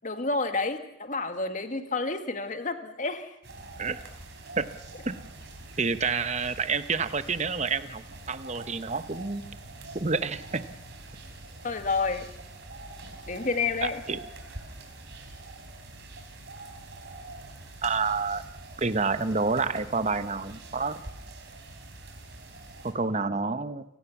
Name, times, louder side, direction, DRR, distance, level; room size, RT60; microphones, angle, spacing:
voice 1, 0.0-3.3 11.6-12.3 13.3-14.0, left 3 dB, 40° left, 8 dB, 1.9 m, -29 dB
sound 1, 3.4-22.9, right 2 dB, 55° right, 4.4 m, -45 dB
voice 2, 5.8-9.5 9.9-10.6 13.8-14.2 17.8-18.4 18.8-21.0 22.8-23.8, right 4 dB, 35° right, 12 dB, 1.0 m, -28 dB
29.5 x 17.5 x 7.2 m, 0.80 s
head